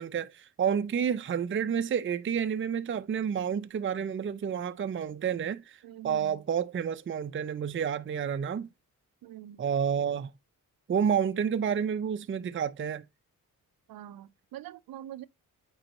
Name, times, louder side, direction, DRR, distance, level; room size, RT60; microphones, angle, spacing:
voice 1, 0.0-8.7 9.6-10.3 10.9-13.0, right 7 dB, 35° right, 0.5 m, -30 dB
voice 2, 5.8-6.4 9.2-9.6 13.9-15.3, right 12 dB, 80° right, 0.6 m, -44 dB
8.9 x 4.1 x 2.8 m
cardioid pair, 75°, 34 cm